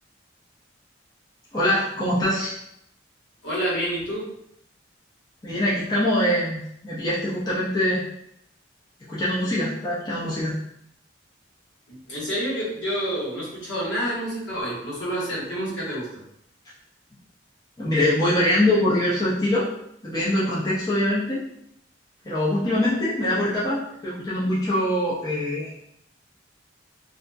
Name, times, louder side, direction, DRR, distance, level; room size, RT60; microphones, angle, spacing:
voice 1, 1.5-2.5 5.4-8.0 9.1-10.6 17.8-19.7 20.0-21.5 22.2-25.7, left 1 dB, 20° left, -8 dB, 0.6 m, -23 dB
voice 2, 3.4-4.3 11.9-16.1, equal, 75° left, -7 dB, 1.3 m, -28 dB
2.8 x 2.5 x 2.2 m, 0.75 s
head